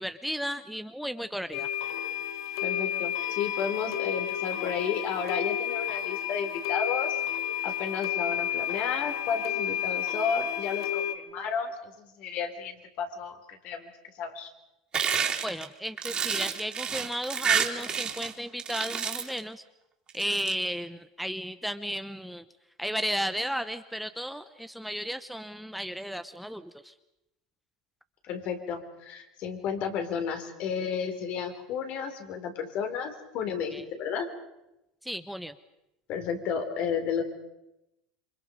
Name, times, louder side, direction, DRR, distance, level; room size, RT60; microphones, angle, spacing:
voice 1, 0.0-1.7 15.4-19.6 20.1-22.4 22.8-26.9 33.7-33.8 35.0-35.5, equal, ahead, 10 dB, 0.9 m, -34 dB
sound 1, 1.5-11.1, left 10 dB, 75° left, 1.7 m, -31 dB
voice 2, 2.6-7.2 7.6-13.9 14.2-14.5 28.2-33.7 34.0-34.3 36.1-37.2, left 6 dB, 55° left, 6 dB, 3.9 m, -32 dB
sound 2, 14.9-18.3 18.6-19.4 20.1-20.5, right 7 dB, 30° right, 3.6 m, -29 dB
28.0 x 24.5 x 5.3 m, 0.91 s
hypercardioid pair, 95°, 3 cm